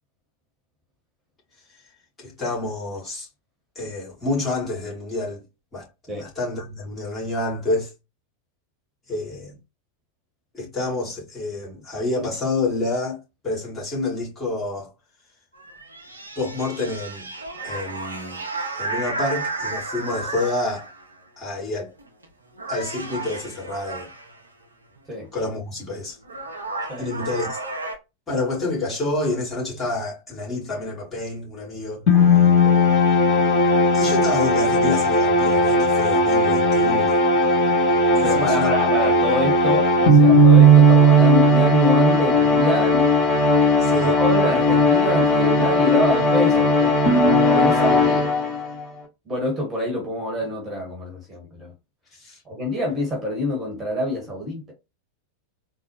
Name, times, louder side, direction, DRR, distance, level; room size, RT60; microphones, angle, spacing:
voice 1, 2.2-3.3 3.8-5.4 5.7-7.9 9.1-9.6 10.5-13.2 13.4-14.9 16.4-17.3 17.6-18.4 18.7-20.9 21.4-21.9 22.7-24.1 25.3-26.2 27.0-27.6 28.3-32.1 33.9-37.2 38.2-38.7 43.8-44.1 52.1-52.4, left 2 dB, 20° left, 2.2 m, -28 dB
sound 1, 15.5-21.1 22.0-22.3 22.6-24.4 25.8-25.9 26.2-28.0, right 3 dB, 75° right, 0.7 m, -32 dB
sound 2, 32.1-48.8, equal, 35° left, 1.8 m, -17 dB
voice 2, 38.2-43.1 44.0-47.0 47.5-48.3 49.3-51.7 52.4-54.7, left 1 dB, 15° right, 1.4 m, -26 dB
3.9 x 2.2 x 3.0 m
figure-of-eight pair, 90°, 0 cm